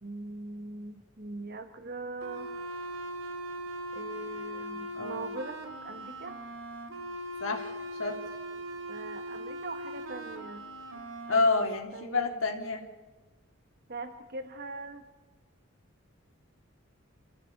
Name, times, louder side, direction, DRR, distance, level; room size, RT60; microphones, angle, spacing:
voice 1, 0.0-2.5 3.9-6.4 8.9-10.6 11.3-12.4 13.9-15.0, right 3 dB, 50° right, 8 dB, 1.4 m, -41 dB
sound 1, 2.2-11.5, equal, 70° right, 3.0 m, -40 dB
voice 2, 4.9-5.3 7.4-8.2 11.3-12.8, left 3 dB, 80° left, 3 dB, 3.3 m, -29 dB
28.0 x 15.0 x 8.4 m, 1.3 s
head